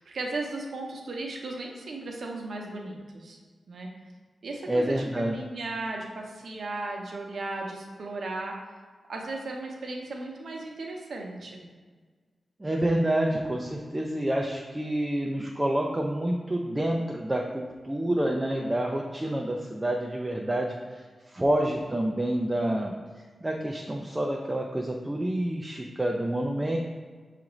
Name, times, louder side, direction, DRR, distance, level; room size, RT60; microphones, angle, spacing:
voice 1, 0.0-3.4 3.7-3.9 4.4-8.6 9.1-11.7, right 2 dB, 65° right, 1 dB, 0.7 m, -36 dB
voice 2, 4.7-5.4 12.6-22.9 23.4-26.8, right 1 dB, 15° right, 0 dB, 0.3 m, -28 dB
5.8 x 2.5 x 3.0 m, 1.5 s
wide cardioid pair, 120°, 0 cm